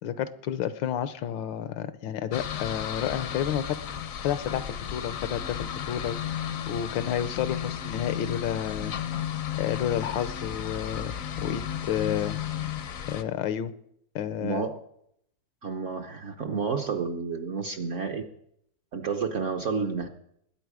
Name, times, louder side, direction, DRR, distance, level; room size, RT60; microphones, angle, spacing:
voice 1, 0.0-8.9 9.6-12.4 13.1-13.7 14.1-14.7, left 9 dB, 80° left, 13 dB, 1.5 m, -31 dB
sound 1, 2.3-13.2, left 9 dB, 60° left, 0.9 m, -34 dB
voice 2, 14.4-14.8 15.6-18.2 18.9-20.1, right 5 dB, 55° right, 4 dB, 0.9 m, -30 dB
21.0 x 8.8 x 4.9 m, 0.74 s
omnidirectional pair, 2.1 m